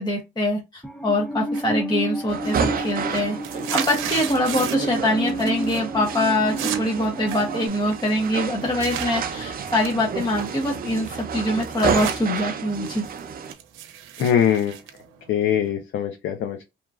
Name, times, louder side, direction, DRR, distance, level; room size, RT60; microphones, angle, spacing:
voice 1, 0.0-3.4 3.7-13.0, left 1 dB, 20° left, 0.8 m, -24 dB
Musical instrument, 0.8-7.7, right 1 dB, 5° left, 0.5 m, -31 dB
sound 1, 1.5-2.0 2.3-5.0 5.3-5.8 6.1-9.1 9.6-12.2 12.5-15.7, right 10 dB, 90° right, 0.6 m, -35 dB
sound 2, 2.3-13.5, right 6 dB, 45° right, 0.6 m, -30 dB
voice 2, 14.2-14.8 15.3-16.7, left 9 dB, 70° left, 0.6 m, -22 dB
2.9 x 2.5 x 2.4 m
cardioid pair, 90°, 20 cm